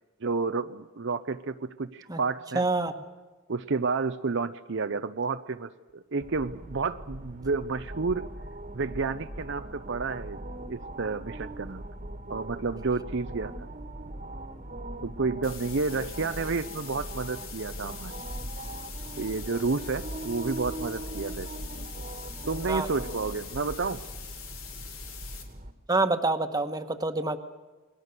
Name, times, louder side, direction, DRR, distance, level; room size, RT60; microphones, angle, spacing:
voice 1, 0.2-2.7 3.5-8.3 8.7-11.8 12.3-13.7 15.0-18.1 19.2-21.5 22.5-24.0, right 4 dB, 60° right, 9 dB, 0.7 m, -30 dB
voice 2, 2.5-2.9 22.7-22.9 25.9-27.4, right 2 dB, 20° right, 8 dB, 1.5 m, -26 dB
sound 1, 6.2-25.7, right 1 dB, 40° right, 1.7 m, -40 dB
sound 2, 15.4-25.4, left 7 dB, 90° left, 3.9 m, -44 dB
29.0 x 21.0 x 6.8 m, 1.3 s
head